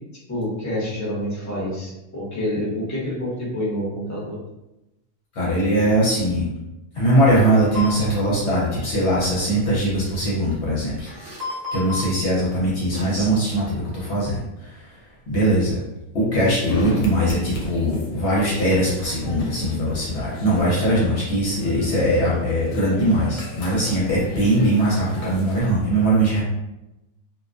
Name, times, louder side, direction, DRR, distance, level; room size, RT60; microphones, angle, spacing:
voice 1, 0.3-4.4, left 1 dB, 15° left, -7 dB, 0.8 m, -27 dB
voice 2, 5.3-6.4 6.9-11.1 11.7-14.9 15.3-15.8 16.1-26.4, right 1 dB, 65° left, -6 dB, 0.9 m, -21 dB
sound 1, 7.7-7.9 11.1-12.1 12.9-13.4, left 2 dB, 55° right, 0.9 m, -31 dB
sound 2, 16.7-25.6, left 1 dB, 85° left, 1.0 m, -35 dB
2.4 x 2.1 x 2.5 m, 0.95 s
omnidirectional pair, 1.3 m